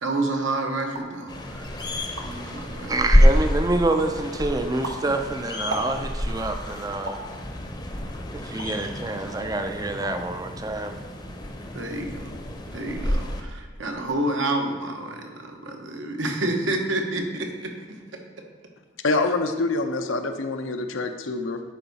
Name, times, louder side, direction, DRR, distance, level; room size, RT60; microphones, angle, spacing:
voice 1, 0.0-1.9 2.2-2.9 11.7-12.4 12.7-18.4 19.1-19.2, right 2 dB, 75° right, 2 dB, 1.1 m, -29 dB
sound 1, 0.9-1.2 1.7-1.8 2.0-2.5 3.0-3.5 3.9-4.2 4.6-6.3 7.1-7.3 8.0-8.9 9.3-9.5 9.8-10.3 10.6-11.1, right 2 dB, 90° right, 1.0 m, -37 dB
sound 2, 1.3-13.4, equal, 20° left, 0.7 m, -27 dB
voice 2, 2.9-7.2 8.3-11.0, right 2 dB, 20° right, 7 dB, 0.4 m, -27 dB
voice 3, 19.0-21.6, left 3 dB, 80° left, 7 dB, 0.7 m, -25 dB
11.0 x 4.7 x 4.1 m, 1.5 s
head